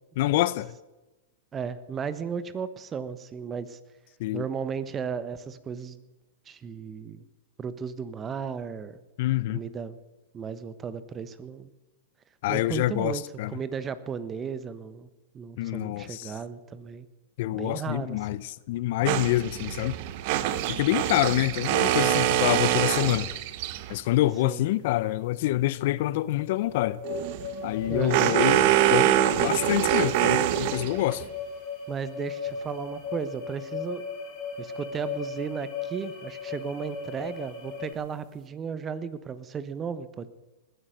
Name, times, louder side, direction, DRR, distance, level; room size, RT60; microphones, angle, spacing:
voice 1, 0.2-0.7 4.2-4.5 9.2-9.6 12.4-13.6 15.6-16.3 17.4-20.0 20.7-23.3 23.9-27.0 27.6-31.2, left 16 dB, 60° left, 0.6 m, -26 dB
voice 2, 1.5-3.8 4.3-6.0 6.5-7.2 7.6-9.0 9.5-10.0 10.3-11.7 12.5-13.2 13.5-15.1 15.3-17.1 17.5-18.4 24.4-24.6 27.9-28.4 31.9-34.0 34.6-40.3, right 6 dB, 25° right, 1.2 m, -35 dB
sound 1, 19.1-24.0 27.0-31.3, right 12 dB, 55° right, 1.1 m, -25 dB
sound 2, 26.4-37.9, left 5 dB, 35° left, 4.3 m, -37 dB
19.5 x 10.0 x 6.6 m
hypercardioid pair, 110°, 0 cm